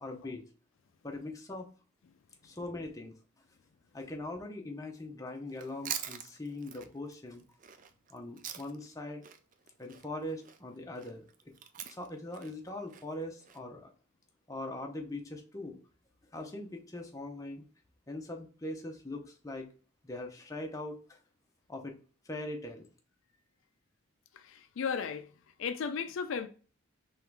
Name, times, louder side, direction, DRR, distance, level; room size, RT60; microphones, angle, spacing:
voice 1, 0.0-0.4 1.0-1.7 2.4-3.1 3.9-7.4 8.1-9.2 9.8-11.2 11.9-13.9 14.5-15.8 16.3-17.6 18.1-19.7 20.0-21.2 21.7-21.9 22.2-22.9, left 1 dB, 15° left, 0.7 m, -41 dB
Chewing mastication, 5.5-8.9 9.2-13.6, right 9 dB, 40° right, 0.4 m, -44 dB
voice 2, 24.3-25.3 25.6-26.5, left 6 dB, 70° left, 0.4 m, -35 dB
3.7 x 3.1 x 4.5 m
head